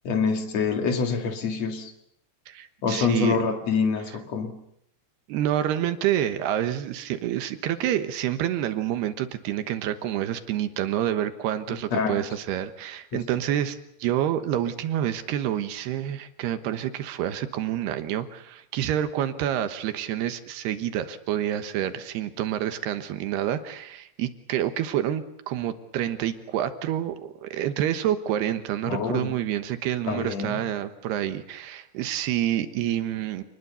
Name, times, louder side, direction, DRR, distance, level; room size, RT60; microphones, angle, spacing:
voice 1, 0.0-1.9 2.8-4.5 11.7-12.2 13.1-13.2 28.8-29.3 30.1-30.6, left 5 dB, 45° left, 6 dB, 2.7 m, -26 dB
voice 2, 2.5-3.4 5.3-33.4, right 11 dB, 70° right, 10 dB, 3.1 m, -28 dB
28.0 x 20.5 x 7.0 m, 0.75 s
omnidirectional pair, 5.0 m